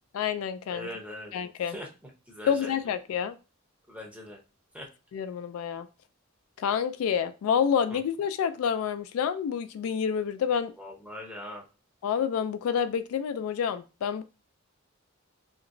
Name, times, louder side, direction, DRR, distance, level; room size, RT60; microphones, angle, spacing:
voice 1, 0.1-0.9 1.3-1.8 2.5-3.4 5.1-5.9 6.6-10.7 12.0-14.2, left 7 dB, 80° left, 13 dB, 0.3 m, -28 dB
voice 2, 0.7-1.3 1.6-1.9 2.3-2.7 3.9-4.4 4.7-4.9 7.9-8.0 10.8-11.6, left 1 dB, 5° right, 0 dB, 0.7 m, -40 dB
2.9 x 2.9 x 2.5 m, 0.31 s
head